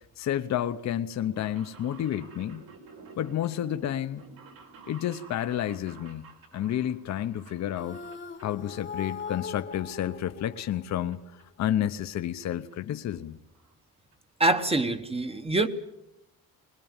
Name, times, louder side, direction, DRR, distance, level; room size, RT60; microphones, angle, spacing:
voice 1, 0.2-2.6 3.2-4.2 4.9-8.0 8.4-11.2 11.6-13.4, left 11 dB, 50° left, 0.8 m, -30 dB
sound 1, 1.0-8.8 9.0-9.7 10.1-11.1 11.4-11.5 12.4-12.5 12.7-12.8 13.1-13.2 13.5-13.7 14.1-14.2 14.4-14.5, right 4 dB, 85° right, 4.9 m, -51 dB
sound 2, 7.7-11.2, left 6 dB, 35° left, 1.1 m, -40 dB
voice 2, 14.4-15.7, right 2 dB, 15° right, 0.9 m, -25 dB
21.0 x 20.5 x 8.9 m
cardioid pair, 170°, 35 cm